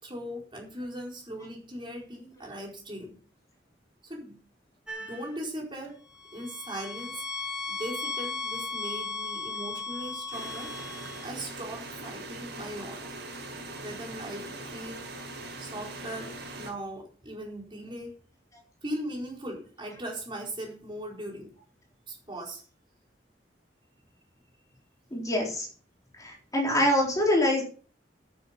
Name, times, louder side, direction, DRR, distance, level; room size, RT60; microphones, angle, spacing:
voice 1, 0.0-3.1 4.0-4.4 5.0-6.0 6.3-7.2 7.7-10.7 11.2-13.0 13.8-14.4 14.7-15.0 15.6-18.1 18.8-21.5 22.1-22.6, right 1 dB, 30° right, -1 dB, 4.4 m, -39 dB
sound 1, 4.9-5.4 6.1-11.3, left 3 dB, 5° right, 2.4 m, -36 dB
sound 2, 10.3-16.7, right 2 dB, 70° right, 5.9 m, -41 dB
voice 2, 25.1-25.7 26.1-27.6, left 1 dB, 20° left, -2 dB, 4.0 m, -25 dB
10.5 x 9.4 x 5.3 m, 0.40 s
head